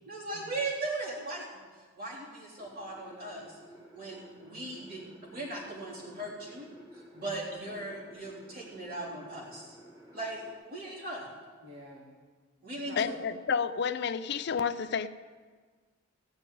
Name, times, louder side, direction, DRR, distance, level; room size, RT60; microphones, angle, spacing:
voice 1, 0.1-1.5 1.7-3.6 3.9-6.7 6.9-9.8 10.1-11.2 12.6-13.1, right 2 dB, 45° right, 3.5 m, -38 dB
sound 1, 2.6-10.5, equal, 20° right, 2.7 m, -53 dB
voice 2, 11.6-12.1 12.9-13.1, equal, 75° right, 1.6 m, -49 dB
voice 3, 13.0-15.1, left 6 dB, 55° left, 0.4 m, -30 dB
15.5 x 5.4 x 9.1 m
head